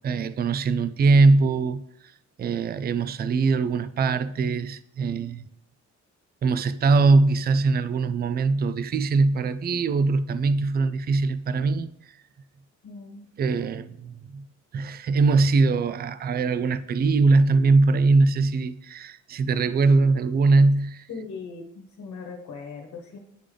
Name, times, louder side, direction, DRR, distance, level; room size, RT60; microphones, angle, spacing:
voice 1, 0.0-1.8 2.4-5.4 6.4-11.9 13.4-14.5 14.7-21.1, right 3 dB, 35° right, 0.4 m, -21 dB
voice 2, 12.8-13.3 21.1-23.2, left 4 dB, 65° left, 1.2 m, -39 dB
9.9 x 3.3 x 3.7 m
cardioid pair, 90°, 30 cm